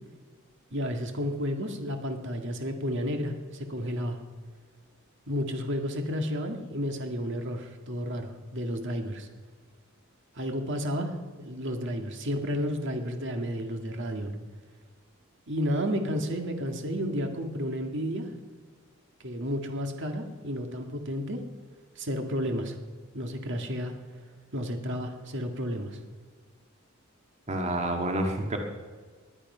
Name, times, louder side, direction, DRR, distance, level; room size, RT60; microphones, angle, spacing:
voice 1, 0.7-4.2 5.3-9.3 10.4-14.3 15.5-18.3 19.2-21.4 22.0-22.8 23.1-24.0 24.5-26.0, equal, 60° right, 4 dB, 1.9 m, -32 dB
voice 2, 27.5-28.6, right 1 dB, 35° right, 2 dB, 1.8 m, -28 dB
20.5 x 11.5 x 5.6 m, 1.5 s
head